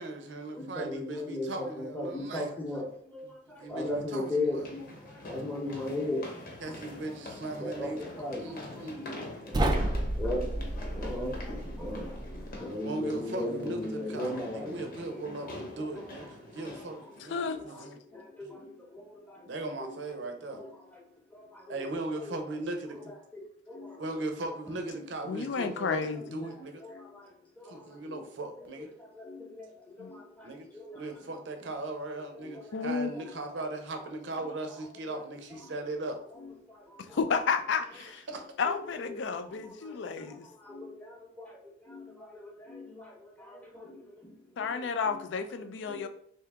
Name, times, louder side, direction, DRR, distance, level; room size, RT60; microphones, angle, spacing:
voice 1, 0.0-2.5 3.6-4.6 6.6-8.0 8.4-9.1 12.8-16.3 16.5-18.0 18.4-18.5 19.5-20.6 21.7-23.1 24.0-26.8 27.7-28.9 30.4-30.7 30.9-36.2 38.0-38.5, right 2 dB, 65° right, 5 dB, 0.6 m, -38 dB
voice 2, 0.5-6.8 7.6-14.7 15.1-16.0 16.5-16.8 17.3-19.5 19.8-20.0 20.5-21.0 21.3-22.4 22.9-24.0 26.1-26.3 26.8-28.2 28.6-28.7 28.9-31.0 32.3-32.8 33.1-33.3 34.4-34.5 35.1-35.2 35.6-35.7 36.3-37.2 38.3-38.4 38.6-45.3 45.9-46.1, left 1 dB, 10° left, -2 dB, 0.8 m, -39 dB
sound 1, 1.8-1.9 3.8-17.6, left 2 dB, 50° left, 0.9 m, -45 dB
sound 2, 9.5-12.6, right 1 dB, 20° right, 0.3 m, -31 dB
voice 3, 25.3-26.5 30.0-30.1 32.7-33.1 37.1-38.2 38.6-40.5 44.6-46.1, left 5 dB, 65° left, 9 dB, 0.4 m, -31 dB
3.4 x 2.8 x 3.4 m, 0.63 s
head